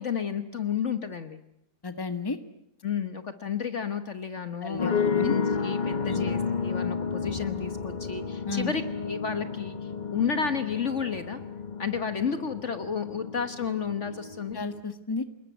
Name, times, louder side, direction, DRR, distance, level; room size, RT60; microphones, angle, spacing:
voice 1, 0.0-1.4 2.8-9.8 10.1-11.4 11.8-14.6, left 6 dB, 50° left, 9 dB, 1.5 m, -31 dB
voice 2, 1.8-2.4 4.6-5.3 6.1-6.3 8.5-8.7 14.5-15.2, left 3 dB, 15° left, 10 dB, 1.5 m, -32 dB
sound 1, 4.8-14.8, left 5 dB, 30° left, 1.1 m, -32 dB
28.0 x 20.0 x 9.4 m, 0.80 s
omnidirectional pair, 1.7 m